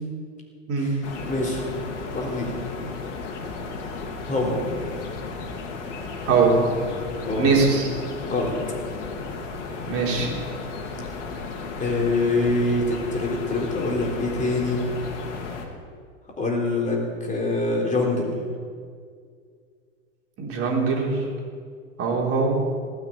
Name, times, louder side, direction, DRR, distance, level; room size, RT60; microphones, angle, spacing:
voice 1, 0.8-1.6 2.1-2.5 4.3-4.6 7.2-7.5 8.2-8.6 11.8-14.8 16.4-18.4, left 2 dB, 20° left, -2 dB, 3.8 m, -25 dB
sound 1, 1.0-15.7, left 4 dB, 70° left, 2.3 m, -34 dB
voice 2, 6.2-6.7 7.4-7.9 9.9-10.3 20.4-21.2 22.0-22.6, right 4 dB, 35° right, -2 dB, 3.7 m, -21 dB
18.0 x 6.5 x 8.5 m, 2.1 s
hypercardioid pair, 95°, 37 cm